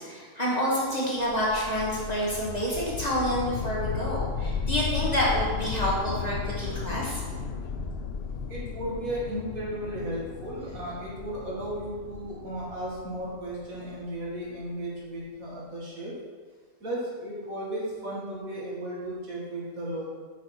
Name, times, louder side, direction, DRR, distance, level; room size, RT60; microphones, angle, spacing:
voice 1, 0.1-7.2, equal, 30° left, -5 dB, 1.7 m, -28 dB
sound 1, 1.2-14.3, left 6 dB, 65° left, 0.6 m, -35 dB
voice 2, 8.5-16.2 16.8-20.1, right 1 dB, 70° right, -6 dB, 2.5 m, -35 dB
7.6 x 6.5 x 4.5 m, 1.5 s
omnidirectional pair, 1.5 m